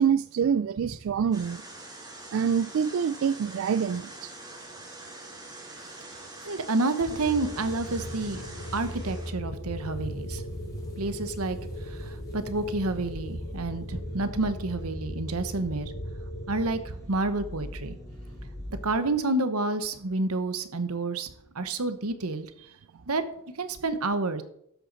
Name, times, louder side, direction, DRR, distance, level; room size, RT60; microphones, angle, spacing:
voice 1, 0.0-1.6 2.3-4.3, right 7 dB, 65° right, 0.3 m, -26 dB
sound 1, 1.3-9.3, right 2 dB, 15° right, 2.6 m, -44 dB
voice 2, 6.4-8.4 8.7-15.9 16.5-18.0 18.8-22.5 23.1-23.2 23.5-24.4, right 2 dB, 85° right, 1.1 m, -29 dB
sound 2, 7.1-16.8, equal, 75° left, 2.8 m, -38 dB
sound 3, 8.8-18.9, equal, 15° left, 2.7 m, -44 dB
12.5 x 8.2 x 4.1 m
head